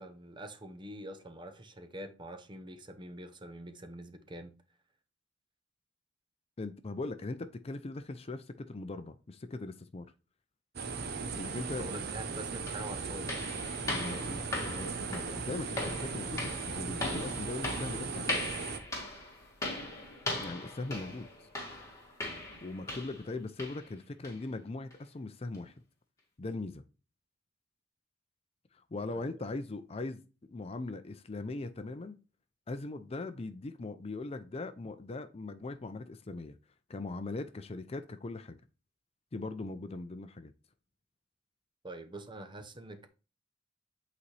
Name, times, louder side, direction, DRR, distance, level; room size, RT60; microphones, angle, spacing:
voice 1, 0.0-4.6 11.8-13.3 29.1-29.4 41.8-43.1, right 1 dB, 25° right, 0.7 m, -45 dB
voice 2, 6.6-10.1 11.4-11.9 14.0-18.4 20.3-21.5 22.6-25.7 26.4-26.8 28.9-30.2 30.5-32.2 32.7-36.6 36.9-38.6 39.3-40.5, left 2 dB, 35° left, 0.5 m, -40 dB
sound 1, 10.8-18.8, right 5 dB, 55° right, 0.8 m, -38 dB
sound 2, 12.1-12.2 12.7-23.3 23.6-23.9 24.2-24.4 24.9-25.0 25.5-25.6, left 2 dB, 15° left, 1.9 m, -39 dB
8.4 x 4.1 x 3.2 m
head